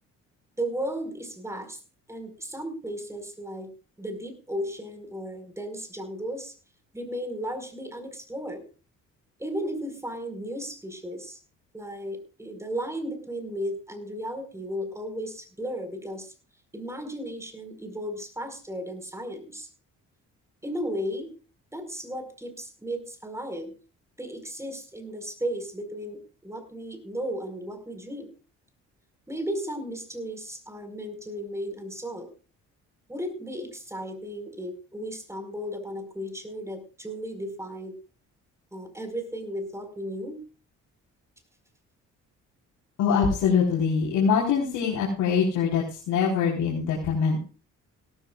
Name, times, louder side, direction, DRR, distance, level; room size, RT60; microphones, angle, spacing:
voice 1, 0.6-1.8 2.1-3.7 4.0-6.5 6.9-8.6 9.4-11.4 11.7-16.3 16.7-19.7 20.6-21.3 21.7-23.7 24.2-28.3 29.3-32.3 33.1-38.0 38.7-40.4, equal, 10° right, 6 dB, 5.0 m, -35 dB
voice 2, 43.0-47.4, left 6 dB, 85° left, -4 dB, 4.4 m, -23 dB
18.0 x 14.0 x 2.5 m, 0.36 s
cardioid pair, 90°, 30 cm